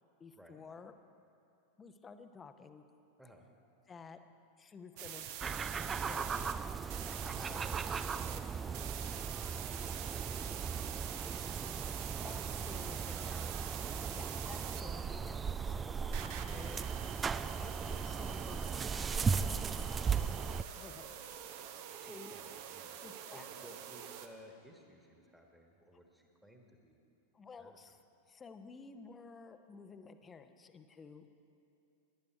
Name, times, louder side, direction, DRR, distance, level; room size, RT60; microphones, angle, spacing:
voice 1, 0.2-0.9 1.8-2.8 3.9-4.2 4.6-5.3 6.0-6.8 7.5-7.6 12.2-13.4 14.1-16.8 17.2-19.7 20.7-21.4 22.0-22.3 23.0-23.7 27.3-28.0 28.3-31.4, left 5 dB, 20° left, 9 dB, 0.8 m, -53 dB
voice 2, 3.2-3.5 7.6-12.0 12.7-13.9 21.8-27.0 27.6-27.8, equal, ahead, 2 dB, 1.5 m, -59 dB
sound 1, 5.0-8.4 8.7-15.0 16.1-24.3, right 10 dB, 45° right, 0.8 m, -46 dB
sound 2, 5.4-20.6, right 6 dB, 20° right, 0.3 m, -37 dB
sound 3, 8.6-16.7, left 2 dB, 75° left, 1.2 m, -64 dB
18.0 x 11.0 x 4.6 m, 2.8 s
figure-of-eight pair, 90°, 0 cm